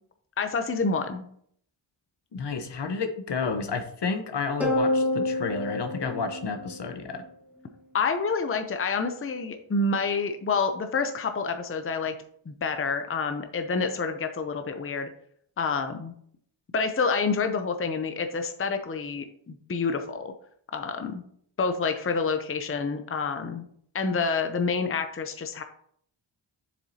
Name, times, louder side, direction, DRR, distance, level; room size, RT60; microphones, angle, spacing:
voice 1, 0.4-1.3 7.9-12.1 12.5-15.1 15.6-16.1 16.7-20.3 20.7-21.2 21.6-23.6 23.9-25.6, left 4 dB, 30° left, 7 dB, 0.7 m, -28 dB
voice 2, 2.3-7.2, left 5 dB, 60° left, 7 dB, 1.0 m, -31 dB
sound 1, 4.6-7.2, left 1 dB, 5° right, 1.5 m, -28 dB
7.3 x 6.9 x 2.8 m, 0.65 s
cardioid pair, 70°, 47 cm